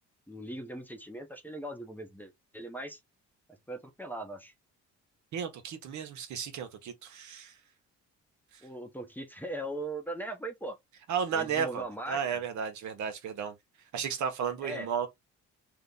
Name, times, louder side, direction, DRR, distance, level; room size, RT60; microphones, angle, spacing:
voice 1, 0.3-3.0 3.7-4.5 8.6-10.8 11.3-12.4 14.6-14.9, right 1 dB, 5° left, 0.7 m, -39 dB
voice 2, 5.3-7.6 8.5-8.6 11.1-13.6 13.9-15.1, right 7 dB, 70° right, 0.9 m, -33 dB
2.8 x 2.1 x 3.7 m
cardioid pair, 90°, 30 cm